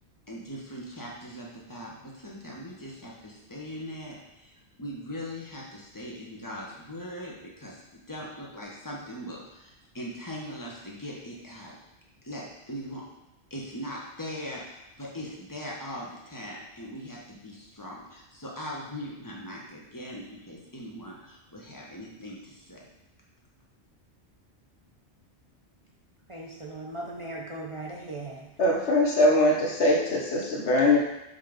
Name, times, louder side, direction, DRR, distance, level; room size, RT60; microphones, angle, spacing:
voice 1, 0.3-4.5 4.8-11.8 12.2-13.1 13.5-22.8, equal, 20° left, -3 dB, 1.2 m, -40 dB
voice 2, 26.3-28.5, right 2 dB, 30° right, -3 dB, 0.8 m, -38 dB
voice 3, 28.6-31.0, left 1 dB, 80° left, -2 dB, 1.5 m, -22 dB
5.6 x 3.7 x 5.2 m, 0.91 s
omnidirectional pair, 1.1 m